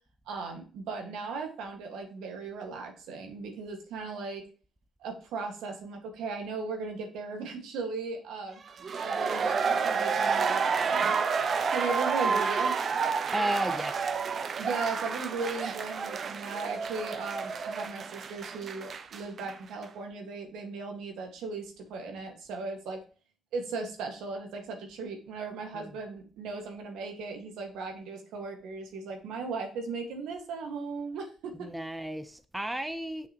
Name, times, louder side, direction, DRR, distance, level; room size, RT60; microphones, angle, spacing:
voice 1, 0.3-4.5 5.0-8.6 9.0-11.2 11.7-12.8 14.6-23.0 23.5-31.7, right 4 dB, 90° right, 1.6 m, -37 dB
sound 1, 8.7-19.5 19.8-19.9, right 5 dB, 50° right, 0.7 m, -30 dB
voice 2, 13.3-14.1 25.7-25.9 31.6-33.3, right 1 dB, 10° right, 0.7 m, -33 dB
6.7 x 5.7 x 2.9 m
cardioid pair, 90°, 0 cm